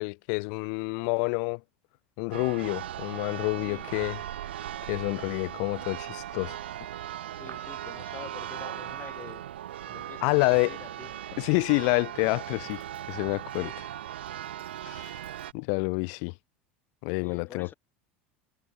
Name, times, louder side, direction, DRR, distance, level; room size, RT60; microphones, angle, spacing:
voice 1, 0.0-1.6 2.2-4.2 4.9-6.6 10.2-10.8 11.4-12.8 13.1-13.7 14.8-15.2 15.5-16.3 17.0-17.7, left 40 dB or more, 60° left, 1.2 m, -28 dB
Church bell, 2.3-15.5, right 12 dB, 80° right, 0.5 m, -38 dB
voice 2, 3.6-3.9 7.3-9.5 9.8-11.1 13.6-13.8 17.2-17.7, left 8 dB, 35° left, 4.7 m, -46 dB
hypercardioid pair, 75°, 6 cm